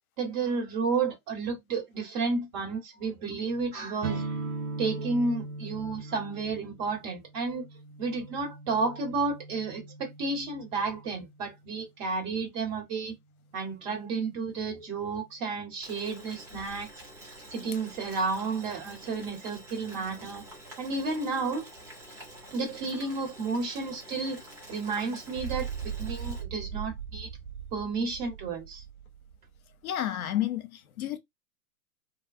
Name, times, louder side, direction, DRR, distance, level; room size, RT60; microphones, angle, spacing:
voice 1, 0.2-4.2 4.8-7.7 8.0-13.1 13.5-16.9 17.5-20.4 20.8-21.6 22.5-24.4 24.7-27.3 27.7-28.8, right 4 dB, 40° right, 1.6 m, -32 dB
sound 1, 4.0-11.6, right 3 dB, 70° right, 0.9 m, -40 dB
Boiling, 15.8-26.4, right 1 dB, 5° right, 0.4 m, -48 dB
sound 2, 25.4-29.6, right 8 dB, 90° right, 0.6 m, -38 dB
voice 2, 29.8-31.2, left 12 dB, 65° left, 0.7 m, -31 dB
2.5 x 2.3 x 2.6 m
figure-of-eight pair, 110°, 46 cm